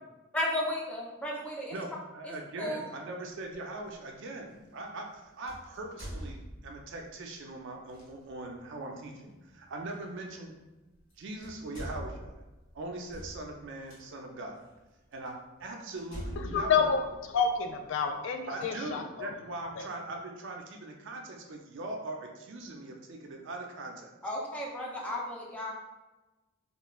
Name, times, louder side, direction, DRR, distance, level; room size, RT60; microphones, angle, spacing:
voice 1, 0.3-1.7 2.6-2.8 24.2-25.7, left 1 dB, 5° left, -4 dB, 0.5 m, -34 dB
voice 2, 1.7-10.5 11.2-12.4 12.7-14.6 15.1-15.3 15.6-16.9 18.5-24.1, right 2 dB, 65° right, 2 dB, 0.4 m, -41 dB
sound 1, 3.4-3.6 5.5-7.0 7.9-8.1 9.9-10.0 11.0-11.1 11.4-14.0 14.7-14.8 15.3-15.4 16.0-17.8, right 1 dB, 80° left, 1.4 m, -43 dB
voice 3, 16.4-17.0 17.3-19.3 19.8-19.9, left 6 dB, 65° left, 6 dB, 0.3 m, -28 dB
3.0 x 2.4 x 2.2 m, 1.1 s
head